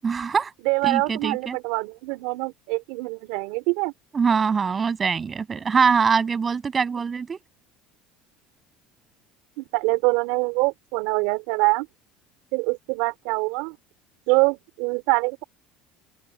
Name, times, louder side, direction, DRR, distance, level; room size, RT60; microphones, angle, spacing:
voice 1, 0.0-0.5 0.8-1.6 4.1-7.4, right 5 dB, 30° right, 7.8 m, -23 dB
voice 2, 0.6-3.9 9.6-11.9 12.5-13.8 14.3-15.4, right 26 dB, 80° right, 3.6 m, -24 dB
open air
supercardioid pair, 100°, 0 cm